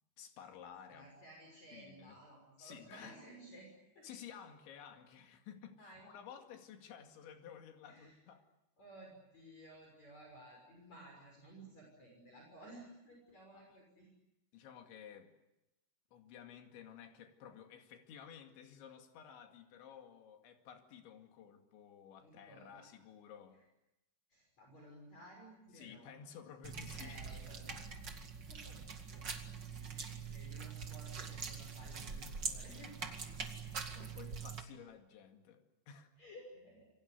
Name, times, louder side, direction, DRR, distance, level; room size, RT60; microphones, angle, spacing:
voice 1, 0.2-1.1 1.7-2.2 2.6-3.2 4.0-8.5 13.5-13.8 14.5-15.3 16.1-23.6 25.7-27.2 33.0-33.2 33.6-36.1, left 8 dB, 75° left, 4.5 m, -54 dB
voice 2, 0.9-4.0 5.8-6.1 7.9-8.2 8.8-14.1 22.2-22.8 24.3-26.1 27.0-28.0 28.5-29.3 29.7-32.9 36.2-36.8, right 1 dB, 35° left, 7.3 m, -56 dB
sound 1, 26.6-34.6, right 5 dB, 40° right, 1.6 m, -44 dB
28.0 x 23.5 x 8.2 m
omnidirectional pair, 5.4 m